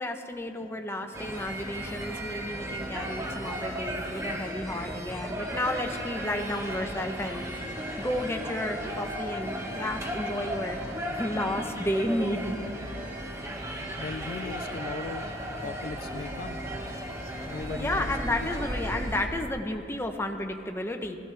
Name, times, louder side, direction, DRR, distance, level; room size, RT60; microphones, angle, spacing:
voice 1, 0.0-10.8 11.1-12.6 17.7-21.2, left 1 dB, 15° left, 4 dB, 0.7 m, -32 dB
sound 1, 1.1-19.3, equal, 15° right, 1.1 m, -35 dB
voice 2, 14.0-15.3 15.6-16.6 17.5-18.1 18.4-18.7, left 4 dB, 55° left, 11 dB, 0.3 m, -38 dB
16.0 x 14.5 x 3.3 m, 2.4 s
head